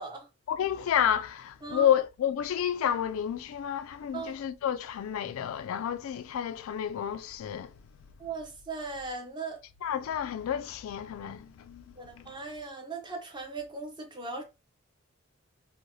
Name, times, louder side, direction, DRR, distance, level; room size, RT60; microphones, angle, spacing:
voice 1, 0.5-7.7 9.8-12.2, left 9 dB, 75° left, 0.3 m, -30 dB
voice 2, 8.2-9.6 12.0-14.4, right 3 dB, 20° right, 0.6 m, -38 dB
3.1 x 2.1 x 2.6 m
head